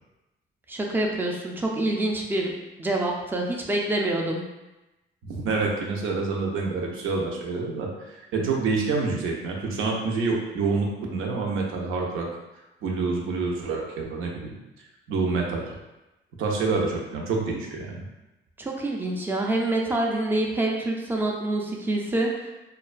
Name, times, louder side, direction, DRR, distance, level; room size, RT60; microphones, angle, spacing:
voice 1, 0.7-2.5 2.8-4.4 18.6-22.5, right 2 dB, 10° right, 0 dB, 0.4 m, -26 dB
voice 2, 5.2-12.3 12.8-14.5 15.1-15.6 16.4-18.0, right 4 dB, 80° right, -1 dB, 0.5 m, -27 dB
2.3 x 2.2 x 2.4 m, 1.0 s
cardioid pair, 100°, 21 cm